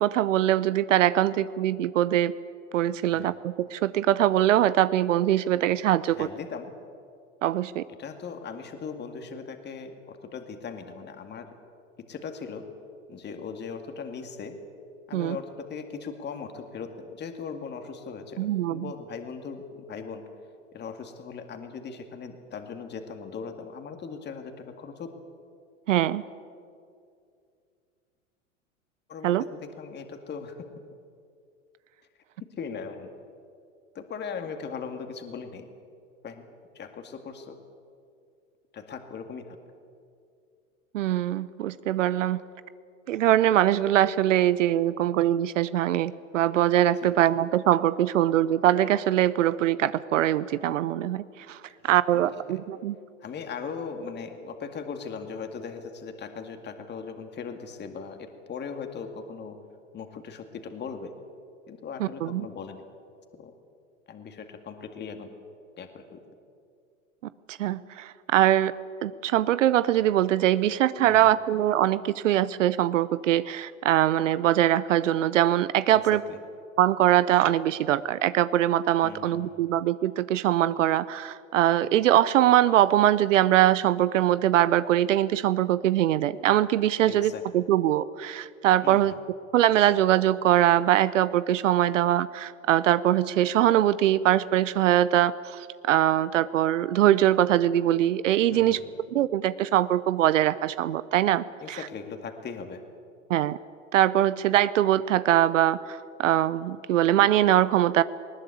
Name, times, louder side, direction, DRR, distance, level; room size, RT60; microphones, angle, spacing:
voice 1, 0.0-2.3 2.7-6.3 7.4-7.8 15.1-15.4 18.4-18.9 25.9-26.2 29.2-29.4 40.9-42.4 43.1-52.9 62.0-62.5 67.5-68.7 69.0-76.2 76.8-89.1 89.5-98.8 99.1-101.8 103.3-103.6 103.9-108.0, right 12 dB, 75° right, 16 dB, 0.7 m, -22 dB
voice 2, 6.1-6.7 8.0-11.5 12.0-12.6 13.1-14.5 15.1-19.6 19.9-20.2 20.7-25.2 29.1-30.7 32.4-33.1 33.9-35.7 36.2-36.5 36.7-37.6 38.7-39.6 47.0-47.1 51.7-51.8 52.1-52.6 53.2-59.6 59.9-61.1 61.7-62.9 63.3-63.5 64.1-65.3 65.8-66.2 71.0-71.3 75.9-76.4 79.0-79.7 87.1-87.5 88.8-89.2 98.5-98.8 101.6-102.8, left 5 dB, 25° left, 6 dB, 2.2 m, -39 dB
20.0 x 19.5 x 8.5 m, 2.4 s
hypercardioid pair, 95°, 38 cm